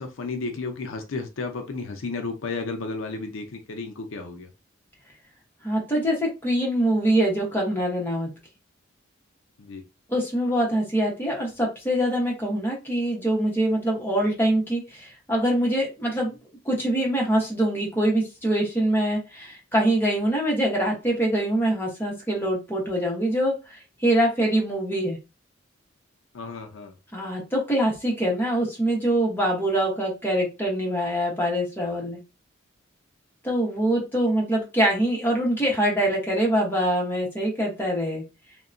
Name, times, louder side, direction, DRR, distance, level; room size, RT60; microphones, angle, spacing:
voice 1, 0.0-4.5 9.6-9.8 26.3-26.9, left 3 dB, 90° left, 5 dB, 0.5 m, -33 dB
voice 2, 5.6-8.3 10.1-16.4 16.6-25.2 27.1-32.2 33.4-38.2, right 1 dB, 10° left, -2 dB, 0.9 m, -24 dB
2.7 x 2.2 x 2.5 m, 0.28 s
head